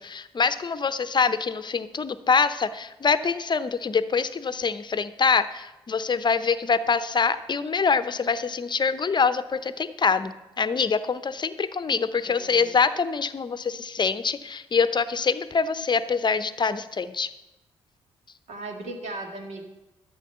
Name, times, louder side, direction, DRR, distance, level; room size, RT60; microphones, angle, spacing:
voice 1, 0.0-10.3 10.6-17.3, left 5 dB, 35° left, 13 dB, 0.8 m, -25 dB
voice 2, 12.2-12.8 18.5-19.6, right 2 dB, 60° right, 3 dB, 1.9 m, -37 dB
12.5 x 6.4 x 6.9 m, 1.0 s
hypercardioid pair, 40°, 13 cm